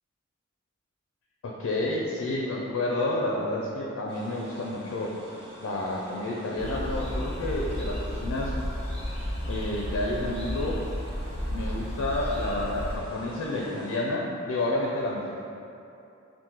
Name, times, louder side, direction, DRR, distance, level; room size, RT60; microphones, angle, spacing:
voice 1, 1.4-5.1 5.6-8.5 9.5-10.8 11.5-15.4, left 2 dB, 90° left, -3 dB, 0.4 m, -30 dB
sound 1, 4.1-14.3, equal, 25° right, 0.8 m, -47 dB
sound 2, 6.6-13.0, equal, 30° left, 0.5 m, -33 dB
2.9 x 2.5 x 3.6 m, 2.8 s
head